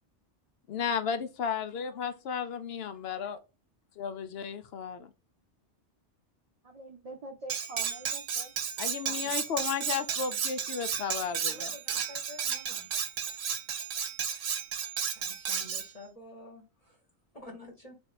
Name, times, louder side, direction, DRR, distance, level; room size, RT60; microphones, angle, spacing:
voice 1, 0.7-3.4 4.0-5.1 8.8-11.7, left 7 dB, 65° left, 0.8 m, -34 dB
voice 2, 6.6-8.5 9.0-9.2, right 3 dB, 45° right, 0.5 m, -45 dB
Cutlery silverware, 7.5-15.9, right 7 dB, 70° right, 0.9 m, -33 dB
voice 3, 11.5-12.9 15.2-17.0 17.3-18.0, left 2 dB, 35° left, 1.2 m, -49 dB
3.5 x 2.7 x 4.1 m
omnidirectional pair, 1.2 m